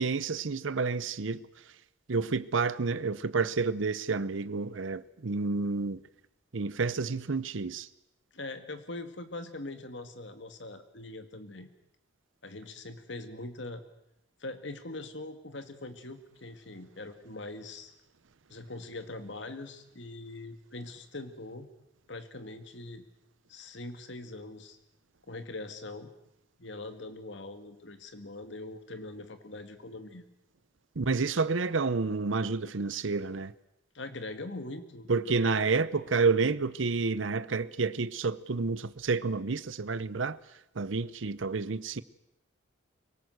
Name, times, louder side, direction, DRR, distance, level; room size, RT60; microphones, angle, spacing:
voice 1, 0.0-1.5 2.1-6.0 6.5-7.9 31.0-33.5 35.1-40.4 40.8-42.0, right 4 dB, 75° right, 0.7 m, -29 dB
voice 2, 8.3-11.7 12.4-13.8 14.4-17.9 18.5-21.7 22.1-23.0 23.5-24.8 25.3-26.1 26.6-30.2 33.9-35.1 35.4-35.7, left 2 dB, 65° left, 2.1 m, -42 dB
24.5 x 18.0 x 7.9 m
head